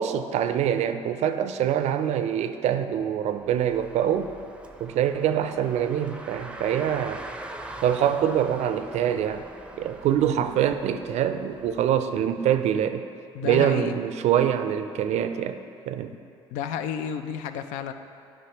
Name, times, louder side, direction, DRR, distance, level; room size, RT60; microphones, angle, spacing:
voice 1, 0.0-4.3 4.8-7.2 7.8-9.4 9.8-13.0 13.4-15.6 15.9-16.1, right 9 dB, 60° right, 10 dB, 0.4 m, -24 dB
Car, 3.4-12.0, right 1 dB, 10° right, 0.5 m, -43 dB
voice 2, 13.3-13.9 16.5-17.9, left 8 dB, 75° left, 9 dB, 0.4 m, -31 dB
8.5 x 5.5 x 2.9 m, 2.5 s
supercardioid pair, 70°, 13 cm